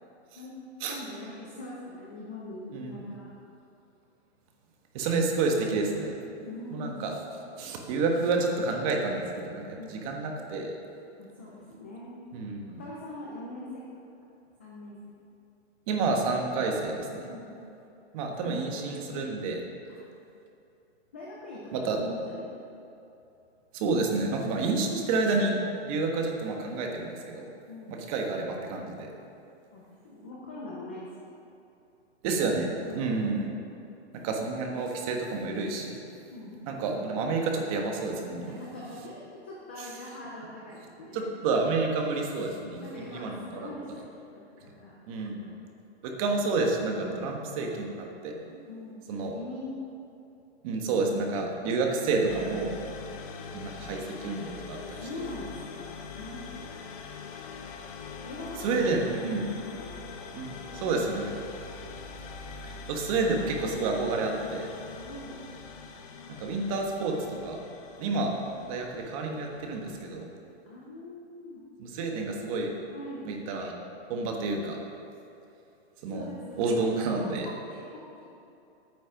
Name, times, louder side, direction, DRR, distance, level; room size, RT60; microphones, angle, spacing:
voice 1, 0.9-3.3 6.4-7.0 9.8-10.1 11.2-12.2 12.8-13.8 14.6-15.0 17.3-17.5 18.3-18.6 19.9-20.1 21.1-22.6 27.7-28.0 29.7-31.3 32.8-33.1 34.1-34.2 36.3-36.6 38.6-41.3 42.8-44.9 45.3-45.6 47.0-47.2 48.5-49.8 50.9-51.0 54.7-56.8 58.2-59.3 59.6-60.0 60.5-60.7 65.0-65.4 68.0-68.2 70.7-71.6 72.9-73.3 76.1-76.7 77.1-78.3, left 1 dB, 10° left, -5 dB, 0.3 m, -42 dB
voice 2, 4.9-6.1 6.7-7.1 7.6-10.7 12.3-12.8 15.9-17.3 18.1-19.6 21.7-22.0 23.7-25.5 25.8-27.5 27.9-29.1 32.2-33.5 34.2-36.0 36.7-38.6 39.8-39.9 41.1-43.7 45.1-45.4 46.0-48.3 49.1-49.3 50.6-52.8 53.5-55.0 58.6-59.5 60.3-61.4 62.7-64.7 66.4-67.6 68.0-68.3 68.7-70.3 71.8-72.7 73.2-73.7 74.1-74.8 76.0-76.3 76.6-77.5, right 3 dB, 30° right, 1 dB, 1.4 m, -29 dB
sound 1, 52.3-70.1, left 5 dB, 30° left, 0.9 m, -43 dB
9.9 x 9.2 x 5.9 m, 2.8 s
hypercardioid pair, 165°, 34 cm